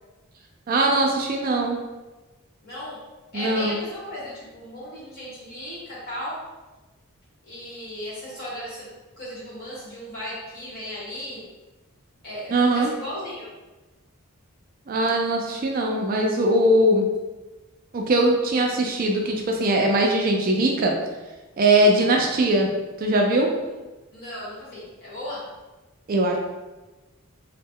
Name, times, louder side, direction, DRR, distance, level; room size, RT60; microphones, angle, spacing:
voice 1, 0.7-1.8 3.3-3.8 12.5-12.9 14.9-17.0 17.9-20.9 21.6-22.7 23.0-23.5 26.1-26.4, right 1 dB, 40° right, 1 dB, 0.3 m, -21 dB
voice 2, 2.6-3.0 3.3-6.4 7.5-8.9 9.2-11.4 12.2-13.5 21.9-22.2 23.6-23.8 24.1-25.4, left 1 dB, 45° left, -8 dB, 1.5 m, -36 dB
3.0 x 2.1 x 3.6 m, 1.1 s
head